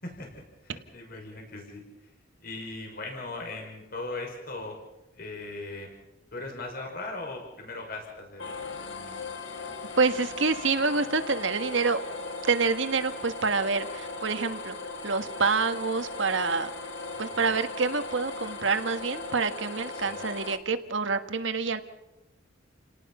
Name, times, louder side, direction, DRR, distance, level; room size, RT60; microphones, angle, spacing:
voice 1, 0.0-1.8 2.4-4.8 5.1-5.9 6.3-9.2 17.3-17.5 20.0-20.2, left 2 dB, 50° left, 1 dB, 5.8 m, -39 dB
sound 1, 8.4-20.6, left 3 dB, 70° left, 2.0 m, -38 dB
voice 2, 10.0-12.0 12.4-14.7 15.0-16.7 17.2-21.8, right 4 dB, 75° right, 9 dB, 1.6 m, -27 dB
29.5 x 18.5 x 5.6 m, 0.96 s
head